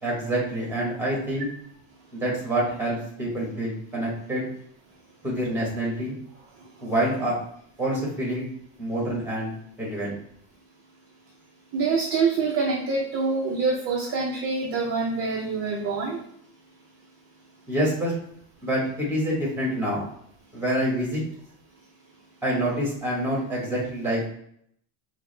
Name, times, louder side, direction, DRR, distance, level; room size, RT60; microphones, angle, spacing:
voice 1, 0.0-1.5 2.1-4.5 5.2-6.2 6.8-7.3 7.8-8.5 8.8-10.2 17.7-18.1 18.6-20.0 20.5-21.2 22.4-24.2, right 1 dB, 5° right, -4 dB, 1.1 m, -27 dB
voice 2, 11.7-16.2, right 4 dB, 30° right, -2 dB, 0.5 m, -25 dB
4.5 x 2.1 x 3.1 m, 0.68 s
cardioid pair, 165°, 46 cm